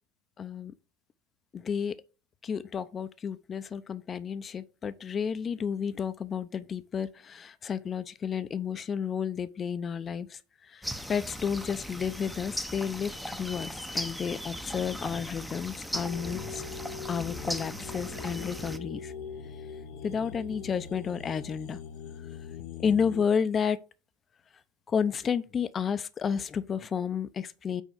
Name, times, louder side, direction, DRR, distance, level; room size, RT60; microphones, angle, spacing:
voice 1, 0.4-0.7 1.5-2.0 2.4-10.4 10.7-16.6 17.1-19.1 20.0-21.8 22.8-23.8 24.9-27.8, left 7 dB, 30° left, 0.7 m, -31 dB
sound 1, 10.8-18.8, equal, ahead, 0.8 m, -38 dB
sound 2, 15.9-23.2, left 6 dB, 65° left, 0.8 m, -41 dB
6.4 x 4.4 x 5.1 m
supercardioid pair, 100°, 0 cm